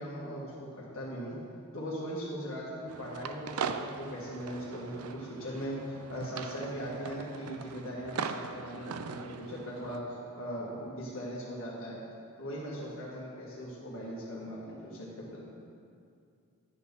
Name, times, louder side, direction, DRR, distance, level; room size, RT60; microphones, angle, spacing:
voice 1, 0.0-1.4 1.7-12.0 12.4-15.4, equal, 65° left, -5 dB, 1.6 m, -39 dB
sound 1, 2.9-10.0, right 6 dB, 80° right, 0.4 m, -40 dB
10.5 x 4.2 x 7.0 m, 2.4 s
head